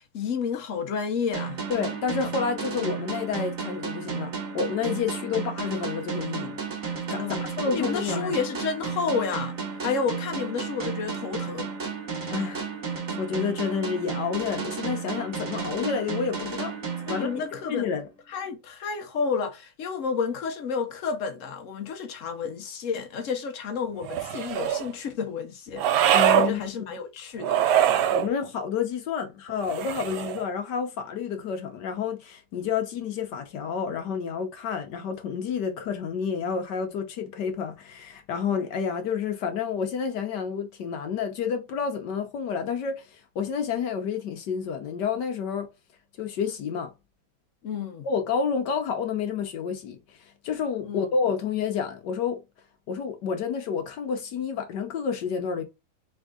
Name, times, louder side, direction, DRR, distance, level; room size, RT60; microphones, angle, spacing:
voice 1, 0.0-1.6 7.2-11.7 17.1-18.0 18.3-28.1 47.6-48.1 50.8-51.1, left 5 dB, 85° left, 0.6 m, -31 dB
sound 1, 1.3-17.9, right 5 dB, 45° right, 1.7 m, -33 dB
voice 2, 1.7-6.5 7.1-8.4 12.3-12.7 13.1-16.7 17.1-17.3 17.7-18.1 26.1-27.0 28.1-45.7 46.2-46.9 48.0-52.4 52.9-55.6, left 6 dB, 65° left, 1.3 m, -29 dB
sound 2, 24.0-24.9 25.8-26.5 27.4-28.3 29.6-30.4, right 10 dB, 85° right, 1.4 m, -23 dB
3.7 x 3.5 x 3.5 m
omnidirectional pair, 2.2 m